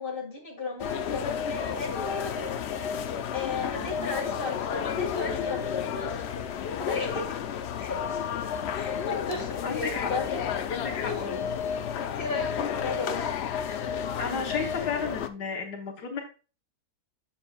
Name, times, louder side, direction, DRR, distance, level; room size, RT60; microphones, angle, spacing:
voice 1, 0.0-2.9 3.3-7.3 7.8-8.0 8.7-10.4 11.1-11.4 12.0-13.3, left 3 dB, 35° left, -1 dB, 2.3 m, -35 dB
sound 1, 0.8-15.3, left 8 dB, 65° left, 0.6 m, -31 dB
voice 2, 9.6-10.1 10.7-11.5 13.8-16.2, left 5 dB, 80° left, 1 dB, 1.7 m, -33 dB
7.5 x 7.0 x 2.4 m, 0.35 s
omnidirectional pair, 1.7 m